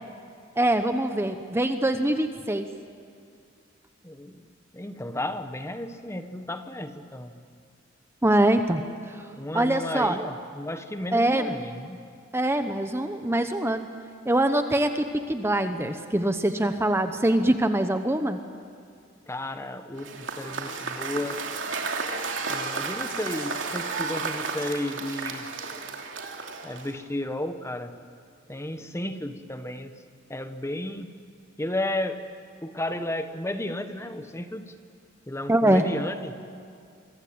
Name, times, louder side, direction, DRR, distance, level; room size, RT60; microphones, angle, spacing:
voice 1, 0.6-2.7 8.2-8.8 9.1-9.2 9.5-10.2 11.1-11.5 12.3-13.9 14.2-18.4 35.5-35.8, right 1 dB, 15° right, 8 dB, 0.9 m, -23 dB
voice 2, 4.0-4.4 4.7-7.3 9.3-12.0 19.3-21.4 22.5-25.5 26.6-27.9 28.5-29.9 30.3-31.1 31.6-32.2 32.6-34.7 35.3-36.3, left 1 dB, 15° left, 9 dB, 1.2 m, -33 dB
Cheering / Applause / Crowd, 20.0-27.1, right 4 dB, 70° right, 2.8 m, -32 dB
27.0 x 24.0 x 8.8 m, 2.3 s
head